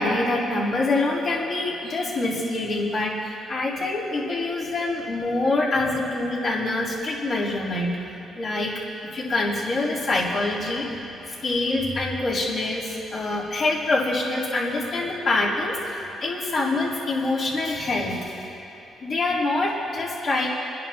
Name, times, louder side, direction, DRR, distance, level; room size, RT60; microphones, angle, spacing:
voice 1, 0.0-8.0 8.4-8.8 9.1-10.9 11.3-18.2 19.0-20.5, left 2 dB, 55° left, -8 dB, 3.9 m, -25 dB
29.5 x 11.0 x 3.0 m, 3.0 s
cardioid pair, 90°, 0 cm